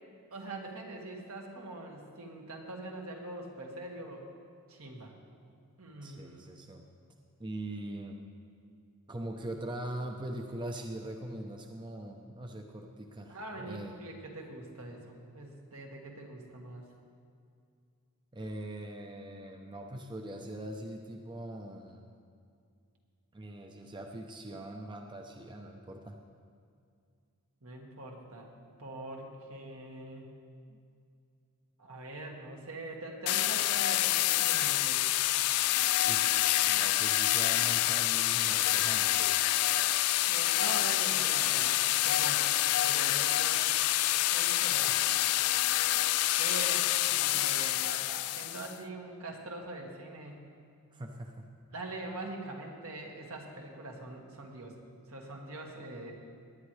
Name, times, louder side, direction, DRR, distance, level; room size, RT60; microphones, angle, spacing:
voice 1, 0.3-4.2 4.7-5.1 5.8-6.4 13.3-16.9 27.6-28.5 28.8-30.3 31.8-35.0 40.2-42.5 42.8-43.7 44.3-45.0 46.4-50.4 51.7-54.8 55.1-56.1, right 2 dB, 75° right, 0 dB, 1.7 m, -43 dB
voice 2, 6.0-6.8 7.4-8.2 9.1-13.9 18.3-22.1 23.3-26.2 30.7-30.8 36.0-39.4 47.3-47.5 50.9-51.5, right 1 dB, 20° right, 3 dB, 0.6 m, -42 dB
sound 1, 33.3-48.7, left 15 dB, 85° left, 0.3 m, -27 dB
18.0 x 10.0 x 3.2 m, 2.3 s
head